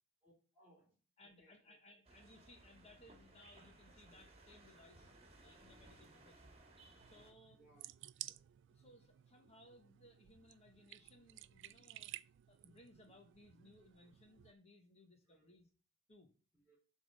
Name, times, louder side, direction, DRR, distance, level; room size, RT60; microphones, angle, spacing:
voice 1, 0.2-1.0 1.2-1.8 7.5-7.9 15.3-15.5 16.5-16.8, right 1 dB, 10° right, -2 dB, 2.5 m, -69 dB
voice 2, 1.2-5.1 5.4-6.6 7.0-7.6 8.3-12.1 12.5-15.7 16.1-16.3, left 1 dB, 30° left, 4 dB, 1.2 m, -64 dB
sound 1, 2.0-7.3, right 2 dB, 30° right, 1.7 m, -62 dB
sound 2, 7.0-14.5, right 15 dB, 60° right, 0.3 m, -55 dB
7.7 x 3.7 x 6.5 m, 0.35 s
head